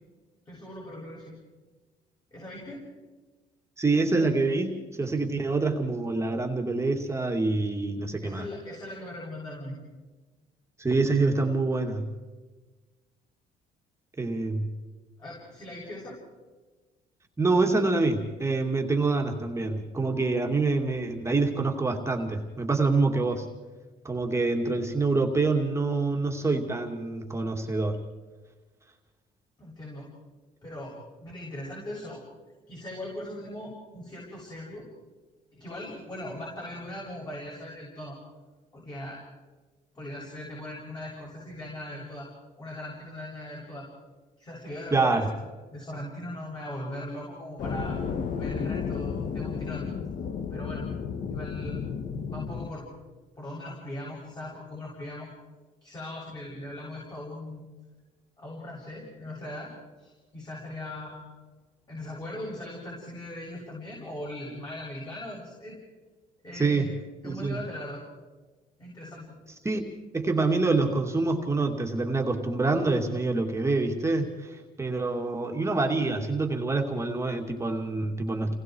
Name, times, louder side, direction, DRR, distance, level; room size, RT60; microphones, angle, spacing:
voice 1, 0.5-1.3 2.3-2.8 8.2-9.8 15.2-16.2 29.6-30.1 30.6-32.2 32.7-34.9 35.5-38.2 38.7-39.2 39.9-42.3 42.6-43.9 44.4-45.2 45.7-48.0 48.4-49.9 50.5-50.9 51.3-51.8 52.3-52.9 53.4-55.3 55.8-57.7 58.4-59.7 60.0-61.3 61.9-65.8 66.4-66.9 67.2-68.0 68.8-69.4, left 1 dB, 25° left, -4 dB, 7.7 m, -39 dB
voice 2, 3.8-8.4 10.8-12.0 14.2-14.7 17.4-23.5 24.0-28.0 44.9-45.3 66.5-66.9 67.2-67.6 69.6-69.8 70.1-78.6, right 3 dB, 15° right, 1 dB, 2.5 m, -26 dB
sound 1, 47.6-52.7, left 6 dB, 55° left, 1.7 m, -33 dB
30.0 x 20.0 x 4.8 m, 1.3 s
cardioid pair, 110°, 17 cm